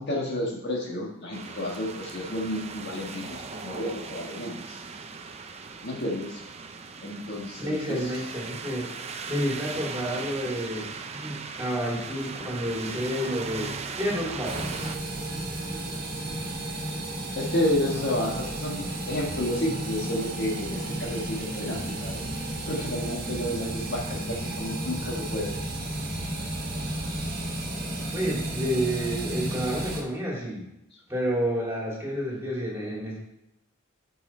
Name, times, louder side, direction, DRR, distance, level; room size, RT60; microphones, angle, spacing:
voice 1, 0.0-4.8 5.8-6.4 7.0-8.1 17.3-22.2 22.7-25.6, left 1 dB, 55° left, -1 dB, 1.5 m, -31 dB
sound 1, 1.3-15.0, right 4 dB, 30° right, 0.6 m, -38 dB
voice 2, 7.6-8.9 9.3-10.9 11.1-14.8 28.1-30.6 31.1-33.2, equal, 15° right, -4 dB, 2.6 m, -30 dB
sound 2, 14.4-30.0, right 1 dB, 45° right, 1.5 m, -33 dB
9.7 x 5.5 x 4.3 m, 0.84 s
head